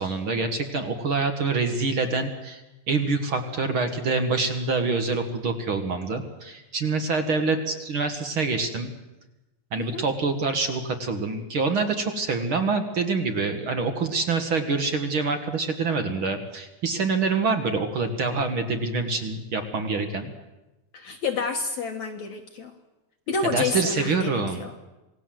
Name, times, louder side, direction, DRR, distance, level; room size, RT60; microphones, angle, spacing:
voice 1, 0.0-2.6 2.9-8.9 9.7-20.3 23.5-24.6, right 4 dB, 50° right, 7 dB, 1.8 m, -26 dB
voice 2, 20.9-22.7 23.3-24.7, left 4 dB, 60° left, 3 dB, 2.4 m, -29 dB
27.5 x 19.0 x 7.7 m, 1.0 s
omnidirectional pair, 4.1 m